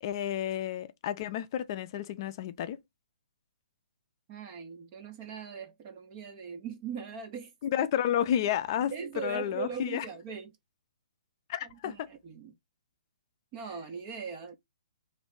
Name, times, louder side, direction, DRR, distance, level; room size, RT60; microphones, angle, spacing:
voice 1, 0.0-2.8 7.6-8.9 9.2-10.0 11.5-12.1, left 10 dB, 35° left, 0.4 m, -31 dB
voice 2, 4.3-7.5 8.8-10.5 11.6-12.5 13.5-14.6, right 6 dB, 25° right, 0.5 m, -40 dB
3.0 x 2.6 x 3.5 m
hypercardioid pair, 160°, 4 cm